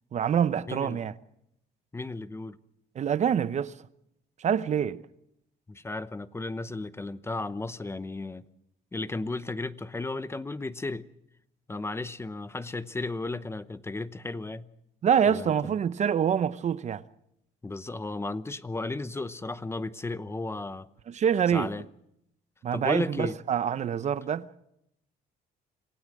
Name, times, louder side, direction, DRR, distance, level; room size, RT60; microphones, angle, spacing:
voice 1, 0.1-1.1 3.0-3.7 4.4-5.0 15.0-17.0 21.1-21.7 22.6-24.5, right 8 dB, 45° right, 0.8 m, -26 dB
voice 2, 0.7-1.0 1.9-2.6 5.7-8.4 8.9-11.1 11.7-14.7 15.3-15.5 17.6-20.9 21.5-21.8 22.7-23.3, left 2 dB, 15° left, 0.9 m, -34 dB
26.5 x 16.5 x 7.7 m
cardioid pair, 110°, 17 cm